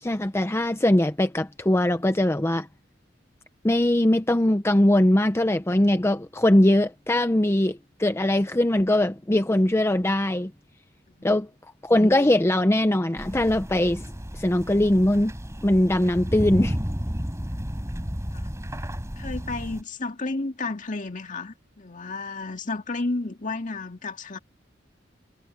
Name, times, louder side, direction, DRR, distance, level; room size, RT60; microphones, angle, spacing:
voice 1, 0.0-2.7 3.6-10.5 11.2-11.5 11.8-14.1 14.3-15.3 15.6-16.8, left 1 dB, 15° left, 0.6 m, -21 dB
sound 1, 13.2-19.8, equal, 15° right, 4.6 m, -32 dB
voice 2, 19.2-24.4, left 3 dB, 45° left, 2.1 m, -32 dB
head